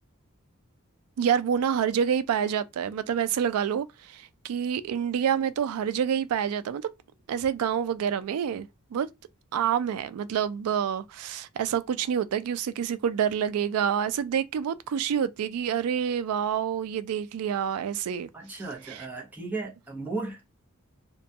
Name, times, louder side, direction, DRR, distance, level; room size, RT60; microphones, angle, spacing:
voice 1, 1.2-6.9 7.3-9.1 9.5-18.3 18.9-19.1, right 8 dB, 90° right, 0.3 m, -27 dB
voice 2, 18.3-20.4, right 3 dB, 10° right, 0.7 m, -35 dB
2.3 x 2.2 x 2.7 m
head